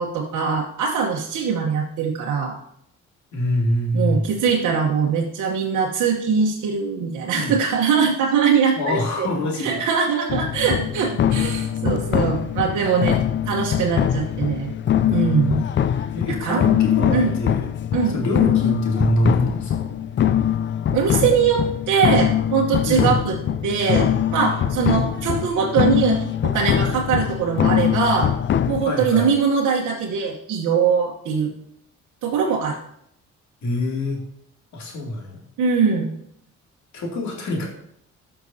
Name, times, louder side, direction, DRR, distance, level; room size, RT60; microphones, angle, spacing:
voice 1, 0.0-2.6 3.9-9.3 9.6-13.2 13.5-14.7 15.1-15.6 16.4-16.6 17.1-17.3 17.9-18.2 20.9-23.4 23.6-28.3 28.7-31.5 32.2-32.8 35.6-36.1, right 6 dB, 75° right, -1 dB, 1.1 m, -22 dB
voice 2, 3.3-4.4 7.4-7.6 8.8-9.8 16.1-17.6 18.1-19.9 22.9-23.2 28.8-29.3 33.6-34.2 34.7-35.5 36.9-37.7, left 1 dB, 70° left, -1 dB, 2.5 m, -24 dB
sound 1, 10.3-28.9, left 9 dB, 40° left, 0.4 m, -22 dB
13.5 x 5.9 x 2.8 m, 0.74 s
cardioid pair, 90°, 30 cm